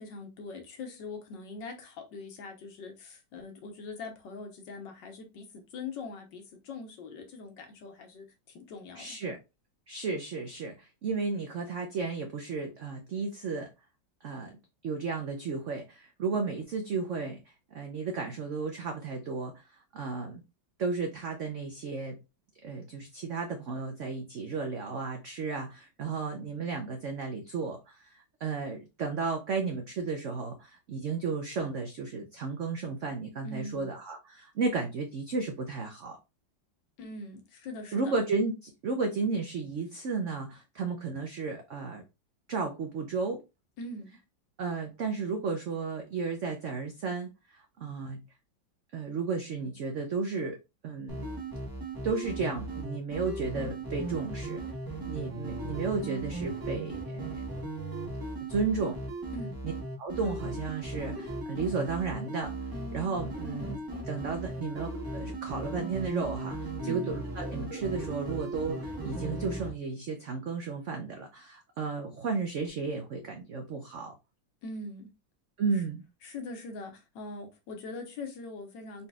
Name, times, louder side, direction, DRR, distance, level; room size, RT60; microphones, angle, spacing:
voice 1, 0.0-9.2 33.4-33.9 37.0-38.1 43.8-44.2 59.3-59.5 66.8-67.1 74.6-75.1 75.7-75.8 76.2-79.1, left 3 dB, 70° left, 1.6 m, -42 dB
voice 2, 9.0-9.4 9.9-13.7 14.2-14.5 14.8-17.4 17.7-20.4 20.8-22.2 22.6-36.2 37.9-42.0 42.5-43.4 44.6-48.2 48.9-51.2 52.0-54.6 55.1-57.4 58.5-59.0 60.0-62.5 62.9-63.8 64.0-74.1 75.6-76.0, right 4 dB, 80° right, 0.6 m, -33 dB
sound 1, 51.1-69.7, right 2 dB, 15° right, 0.8 m, -37 dB
4.1 x 4.1 x 2.3 m
omnidirectional pair, 2.1 m